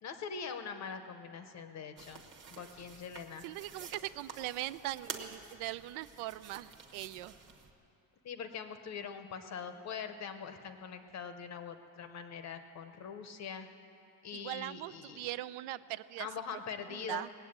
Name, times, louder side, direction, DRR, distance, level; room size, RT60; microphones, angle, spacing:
voice 1, 0.0-2.2 2.5-3.5 8.2-13.7 14.2-15.3 16.2-17.3, left 6 dB, 35° left, 8 dB, 0.7 m, -43 dB
sound 1, 2.0-7.7, right 5 dB, 25° right, 1.0 m, -49 dB
voice 2, 3.4-7.3 14.3-16.3 16.9-17.3, right 15 dB, 85° right, 15 dB, 0.6 m, -40 dB
19.5 x 8.1 x 8.7 m, 2.8 s
cardioid pair, 180°, 48 cm